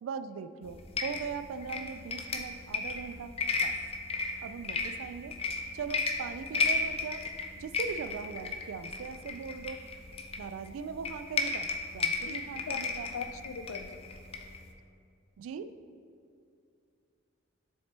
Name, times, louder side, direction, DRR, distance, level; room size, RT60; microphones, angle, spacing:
voice 1, 0.0-3.7 4.4-5.4 5.7-7.3 7.6-9.8 10.4-13.1 15.4-15.7, right 6 dB, 90° right, 12 dB, 0.3 m, -40 dB
sound 1, 0.6-14.7, left 4 dB, 30° left, 0.5 m, -34 dB
voice 2, 13.1-14.0, left 5 dB, 90° left, 10 dB, 0.4 m, -39 dB
7.3 x 5.7 x 3.3 m, 2.5 s
head